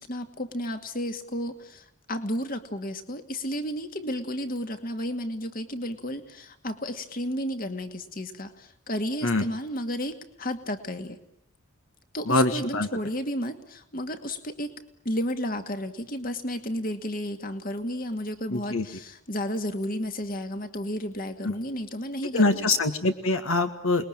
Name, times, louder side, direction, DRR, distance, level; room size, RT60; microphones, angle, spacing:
voice 1, 0.0-11.2 12.1-14.8 15.0-22.7, equal, 40° left, 7 dB, 2.3 m, -32 dB
voice 2, 12.3-12.9 18.5-18.9 21.4-21.5 22.3-24.1, left 2 dB, 65° left, 7 dB, 1.8 m, -24 dB
29.0 x 21.0 x 8.9 m, 0.77 s
head